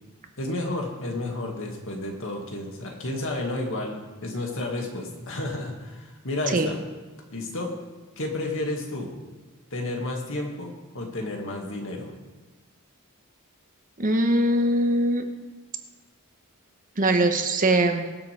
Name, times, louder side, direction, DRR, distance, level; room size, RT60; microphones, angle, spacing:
voice 1, 0.4-6.8 7.3-7.7 8.2-9.1 9.7-12.1, left 2 dB, 65° left, 1 dB, 2.2 m, -31 dB
voice 2, 14.0-15.2 17.0-18.0, right 1 dB, 40° right, 6 dB, 1.1 m, -21 dB
23.0 x 7.6 x 3.5 m, 1.3 s
head